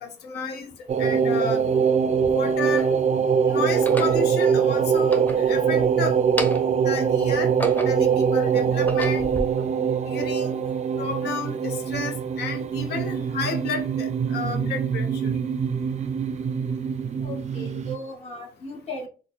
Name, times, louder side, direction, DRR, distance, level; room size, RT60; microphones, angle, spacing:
voice 1, 0.0-1.7 2.3-2.9 3.4-6.2 6.8-7.5 7.8-9.3 10.1-10.5 11.0-15.3, left 4 dB, 80° left, 0.6 m, -32 dB
sound 1, 0.9-18.0, right 7 dB, 45° right, 0.4 m, -23 dB
sound 2, 1.2-1.3 2.1-2.9 3.7-4.2 4.9-5.9 6.2-6.8 7.3-8.1 8.6-9.4, equal, 10° left, 0.7 m, -32 dB
voice 2, 17.2-19.1, left 1 dB, 40° left, 0.9 m, -36 dB
4.0 x 2.0 x 3.1 m
cardioid pair, 80°, 17 cm